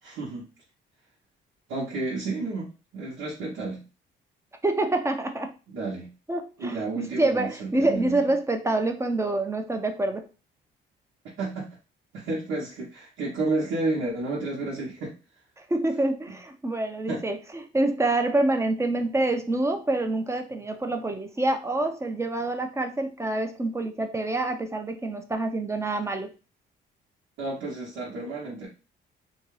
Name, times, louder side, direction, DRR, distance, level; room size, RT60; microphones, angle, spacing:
voice 1, 0.0-0.5 1.7-2.7 2.9-3.8 5.7-6.1 6.6-8.2 11.4-11.7 12.1-15.1 17.1-17.2 27.4-28.7, right 2 dB, 85° right, -7 dB, 0.9 m, -31 dB
voice 2, 4.6-5.5 6.3-10.2 15.7-17.4 17.7-26.3, right 2 dB, 15° right, 5 dB, 0.5 m, -26 dB
2.7 x 2.3 x 3.1 m, 0.32 s
cardioid pair, 90°, 20 cm